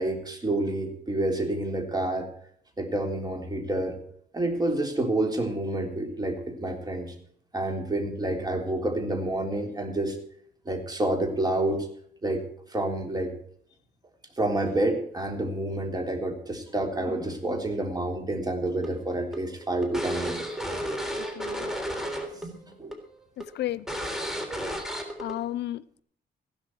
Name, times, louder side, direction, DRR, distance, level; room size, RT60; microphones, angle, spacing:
voice 1, 0.0-2.3 2.8-4.0 4.3-7.2 7.5-10.2 10.7-11.9 12.2-12.4 12.7-13.3 14.4-20.4 22.3-22.9, right 1 dB, 20° right, 3.7 m, -28 dB
sound 1, 18.8-22.5 22.7-22.9 23.4-23.5 23.9-25.3, equal, ahead, 3.4 m, -32 dB
voice 2, 21.3-21.7 23.4-23.9 25.2-26.0, left 13 dB, 85° left, 0.6 m, -33 dB
15.5 x 12.0 x 4.7 m
cardioid pair, 105°, 17 cm